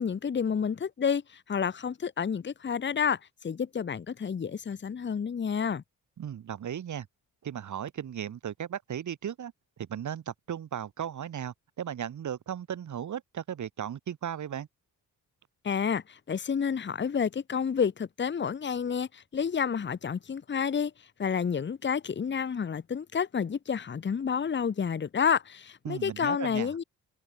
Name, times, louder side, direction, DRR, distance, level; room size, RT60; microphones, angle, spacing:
voice 1, 0.0-5.8 15.6-20.9 21.2-26.8, left 7 dB, 30° left, 1.4 m, -30 dB
voice 2, 6.2-7.1 7.4-9.5 9.8-14.7 25.8-26.7, right 9 dB, 55° right, 3.0 m, -36 dB
open air
cardioid pair, 130°, 34 cm